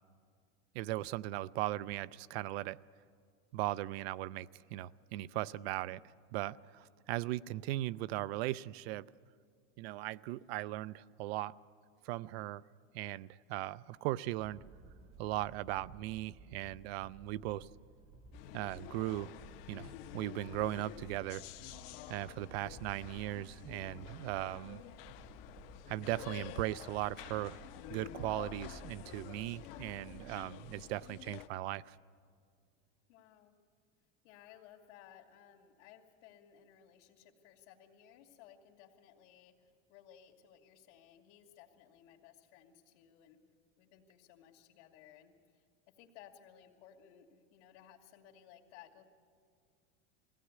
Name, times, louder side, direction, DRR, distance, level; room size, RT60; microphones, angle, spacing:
voice 1, 0.7-2.8 3.5-6.0 6.3-9.1 9.8-11.5 12.0-12.6 12.9-14.6 15.2-17.7 18.5-19.3 19.7-21.4 22.1-24.8 25.9-27.6 27.9-32.0, right 15 dB, 60° right, 19 dB, 0.5 m, -38 dB
sound 1, 14.4-30.4, right 4 dB, 15° right, 0.8 m, -58 dB
sound 2, 18.3-31.5, left 12 dB, 55° left, 0.8 m, -49 dB
voice 2, 33.1-33.6 34.2-43.4 43.8-45.7 46.0-49.0, left 10 dB, 75° left, -3 dB, 2.5 m, -59 dB
22.0 x 16.5 x 9.7 m, 2.2 s
supercardioid pair, 175°, 35 cm